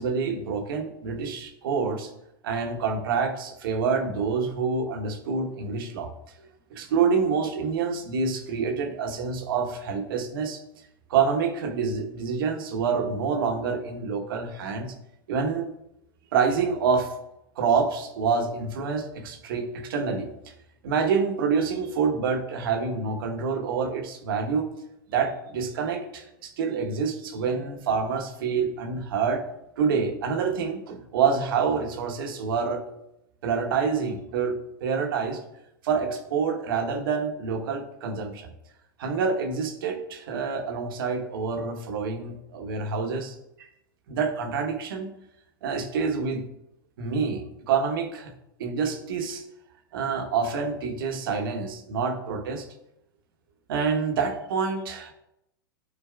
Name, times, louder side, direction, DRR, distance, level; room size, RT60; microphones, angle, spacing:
voice 1, 0.0-2.1 2.4-6.1 6.4-10.6 11.1-14.9 15.3-15.7 16.3-17.1 17.6-20.5 20.8-24.7 25.1-29.4 29.8-32.8 33.4-34.5 34.8-35.4 35.8-38.5 39.0-43.7 44.1-45.1 45.6-46.4 47.0-48.3 48.6-49.4 49.9-52.7 53.7-55.1, right 5 dB, 70° right, 4 dB, 1.2 m, -27 dB
11.5 x 4.5 x 2.4 m, 0.85 s
hypercardioid pair, 115°, 12 cm